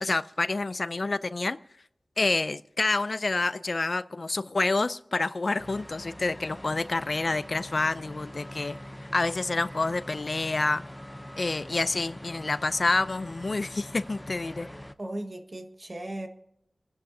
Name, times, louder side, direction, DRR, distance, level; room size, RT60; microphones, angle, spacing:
voice 1, 0.0-1.6 2.2-8.8 9.1-10.8 11.4-14.7, left 3 dB, 55° left, 0.4 m, -28 dB
sound 1, 5.6-14.9, left 1 dB, 10° left, 0.6 m, -43 dB
voice 2, 15.0-16.3, right 1 dB, 40° right, 1.5 m, -36 dB
29.0 x 10.5 x 2.7 m
wide cardioid pair, 60°, 0 cm